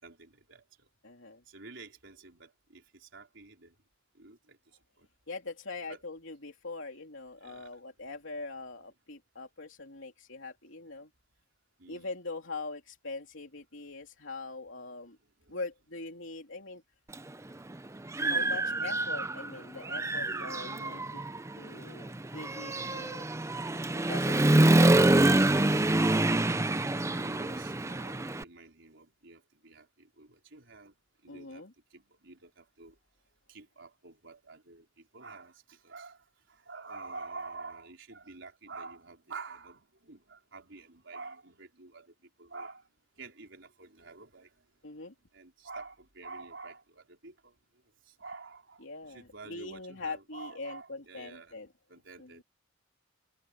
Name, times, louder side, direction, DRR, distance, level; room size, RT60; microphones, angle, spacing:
voice 1, 0.0-0.9 1.5-3.8 4.1-5.1 5.9-6.0 7.4-7.7 11.8-12.1 15.4-15.6 16.6-16.8 20.3-20.7 26.3-33.0 33.5-42.9 43.2-44.6 45.3-47.5 48.0-51.6 51.9-52.4, right 3 dB, 65° right, 4.7 m, -49 dB
voice 2, 1.0-1.4 5.3-11.1 11.9-15.2 15.5-16.8 18.2-21.2 21.6-23.3 24.1-25.7 31.3-31.7 44.8-45.1 48.8-51.7 52.2-52.3, left 3 dB, 70° left, 3.2 m, -42 dB
Human voice / Motorcycle, 17.1-17.2 17.7-19.5 19.8-28.4, right 2 dB, 15° right, 0.5 m, -26 dB
head